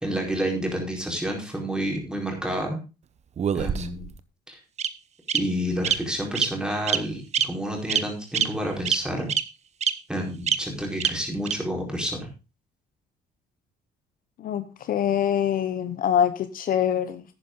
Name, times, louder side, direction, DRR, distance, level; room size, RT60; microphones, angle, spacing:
voice 1, 0.0-2.8 3.5-4.1 4.5-4.6 5.3-9.3 10.1-12.3, equal, 5° right, 1 dB, 4.5 m, -29 dB
Bird vocalization bird call bird song, 3.4-4.1 4.8-4.9 5.3-5.4 5.8-5.9 6.3-6.5 6.9-7.0 7.3-7.4 7.9-8.0 8.3-8.4 8.9-9.0 9.3-9.4 9.8-9.9 10.5-10.6 11.0-11.1 11.5-11.6, right 8 dB, 40° right, 1.0 m, -23 dB
voice 2, 14.4-17.2, left 9 dB, 55° left, 12 dB, 1.0 m, -24 dB
11.0 x 9.6 x 3.7 m, 0.30 s
cardioid pair, 110°, 17 cm